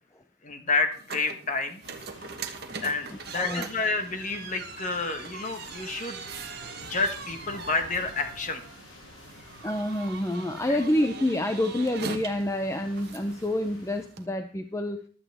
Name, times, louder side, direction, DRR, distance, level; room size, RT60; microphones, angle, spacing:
voice 1, 0.4-1.8 2.8-6.3 6.8-8.6 10.7-10.8, left 3 dB, 35° left, 7 dB, 1.4 m, -29 dB
sound 1, 0.9-14.3, right 5 dB, 50° right, 1.2 m, -42 dB
sound 2, 1.8-14.1, left 1 dB, 70° left, 7.3 m, -49 dB
voice 2, 3.3-3.7 7.7-7.8 9.6-15.0, left 1 dB, 15° left, 7 dB, 0.6 m, -28 dB
15.5 x 12.0 x 3.5 m, 0.42 s
head